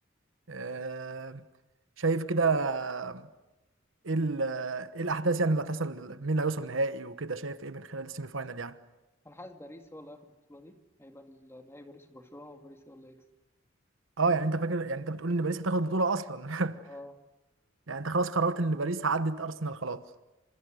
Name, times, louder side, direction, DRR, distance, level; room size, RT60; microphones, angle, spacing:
voice 1, 0.5-1.4 2.0-3.3 4.0-8.8 14.2-16.8 17.9-20.0, right 3 dB, 75° right, 1.2 m, -30 dB
voice 2, 9.2-13.2 16.9-17.2, left 1 dB, 15° left, 2.3 m, -49 dB
28.5 x 26.5 x 6.4 m
head